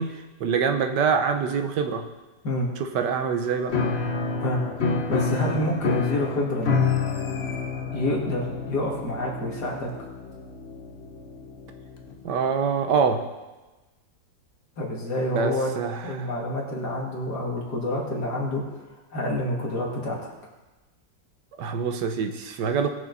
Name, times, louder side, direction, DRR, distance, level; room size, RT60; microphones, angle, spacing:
voice 1, 0.0-2.1 2.8-3.7 12.2-13.2 15.2-16.3 21.6-23.0, right 6 dB, 75° right, 7 dB, 1.4 m, -25 dB
Piano, 3.7-12.2, left 4 dB, 45° left, 1.0 m, -29 dB
voice 2, 5.1-6.8 7.9-9.9 14.8-15.7 16.0-18.6 19.1-20.3, left 1 dB, 65° left, -2 dB, 2.8 m, -28 dB
19.5 x 6.8 x 4.1 m, 1.2 s
omnidirectional pair, 2.0 m